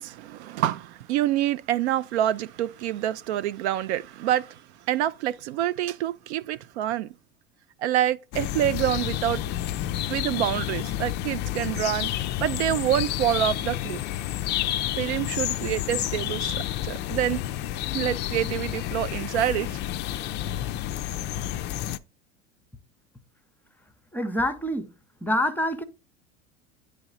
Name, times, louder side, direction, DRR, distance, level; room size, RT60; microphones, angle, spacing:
voice 1, 0.0-4.6 4.9-7.1 7.8-9.4 10.1-12.1 12.4-14.0 15.0-16.6 16.8-17.4 17.9-19.8, right 12 dB, 65° right, 0.5 m, -27 dB
sound 1, 8.3-22.0, left 13 dB, 30° left, 0.4 m, -30 dB
voice 2, 24.1-24.9 25.2-25.8, left 1 dB, 5° left, 0.7 m, -26 dB
9.6 x 3.3 x 3.9 m
hypercardioid pair, 85°, 36 cm